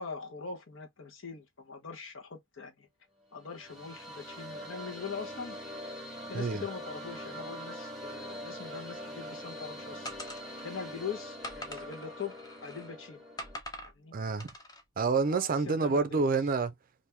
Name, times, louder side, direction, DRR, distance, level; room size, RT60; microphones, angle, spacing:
voice 1, 0.0-2.9 3.3-5.6 6.3-10.1 10.6-12.3 12.6-13.2 13.8-14.1 15.3-16.3, left 5 dB, 70° left, 1.0 m, -42 dB
sound 1, 3.3-13.6, equal, ahead, 1.2 m, -43 dB
sound 2, 10.0-10.8 11.4-12.9 13.4-13.9 14.4-14.8, left 1 dB, 20° left, 0.6 m, -44 dB
voice 2, 14.1-14.5 15.0-16.7, right 4 dB, 45° right, 0.4 m, -28 dB
2.9 x 2.6 x 3.3 m
head